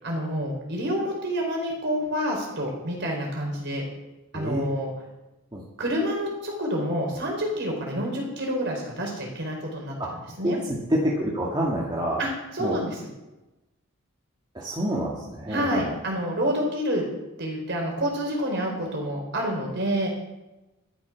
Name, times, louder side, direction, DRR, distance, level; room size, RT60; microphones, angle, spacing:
voice 1, 0.0-3.8 4.3-4.9 5.8-10.6 12.2-13.0 15.5-17.0 17.4-20.1, equal, 50° right, 0 dB, 4.6 m, -28 dB
voice 2, 10.4-12.2 12.6-12.8 14.5-15.9, equal, 20° right, -4 dB, 2.3 m, -27 dB
12.5 x 12.0 x 6.1 m, 1.0 s
head